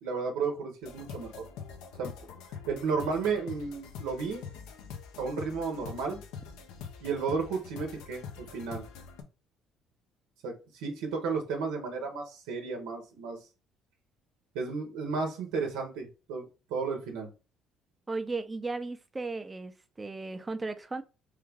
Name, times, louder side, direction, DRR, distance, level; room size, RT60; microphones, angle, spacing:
voice 1, 0.0-1.4 2.0-2.1 2.7-4.4 5.2-6.2 7.0-8.2 8.5-8.8 10.4-10.5 10.8-13.4 14.5-16.4 16.7-17.3, right 5 dB, 85° right, 0.8 m, -33 dB
sound 1, 0.8-9.2, left 6 dB, 80° left, 0.6 m, -45 dB
voice 2, 18.1-21.0, right 3 dB, 20° right, 0.5 m, -36 dB
3.3 x 2.3 x 3.4 m
supercardioid pair, 75°, 0 cm